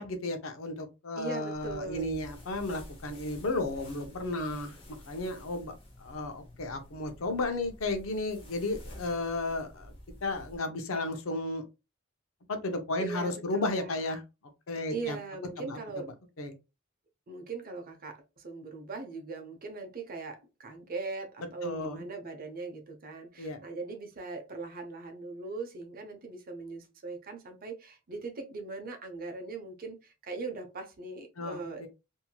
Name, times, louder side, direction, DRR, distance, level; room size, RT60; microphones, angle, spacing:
voice 1, 0.0-4.8 5.1-9.9 10.2-11.6 12.5-14.2 14.7-15.2 15.6-16.0 16.4-16.5 21.6-22.0 23.4-23.6 31.4-31.9, left 2 dB, 80° left, 0.6 m, -33 dB
voice 2, 1.2-2.1 13.0-13.9 14.9-16.1 17.3-31.8, right 3 dB, 45° right, 0.6 m, -40 dB
sound 1, 1.5-10.6, left 1 dB, 30° left, 0.9 m, -50 dB
2.9 x 2.7 x 2.2 m
head